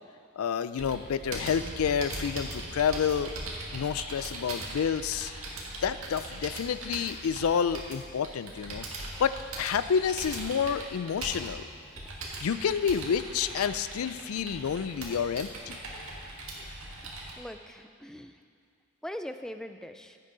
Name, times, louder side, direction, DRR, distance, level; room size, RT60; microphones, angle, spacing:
voice 1, 0.4-3.3 3.7-5.3 5.8-11.7 12.4-15.8, left 7 dB, 85° left, 14 dB, 0.4 m, -29 dB
Computer keyboard, 0.8-17.3, right 2 dB, 80° right, 1.9 m, -40 dB
voice 2, 17.0-18.4 19.0-20.2, equal, 5° left, 8 dB, 0.3 m, -42 dB
15.5 x 8.3 x 3.9 m, 2.2 s
head